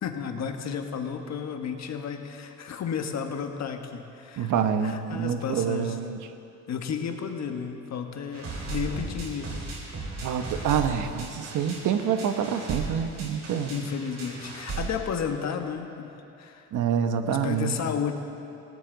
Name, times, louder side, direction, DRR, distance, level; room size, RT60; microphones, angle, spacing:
voice 1, 0.0-4.5 4.8-6.0 6.7-9.5 13.7-16.7 17.3-18.1, left 7 dB, 65° left, 5 dB, 1.5 m, -32 dB
voice 2, 4.4-6.2 10.2-13.7 16.7-17.9, right 8 dB, 75° right, 8 dB, 1.0 m, -27 dB
sound 1, 8.3-14.9, right 3 dB, 55° right, 4.4 m, -36 dB
19.5 x 16.5 x 4.0 m, 2.7 s
cardioid pair, 90°, 30 cm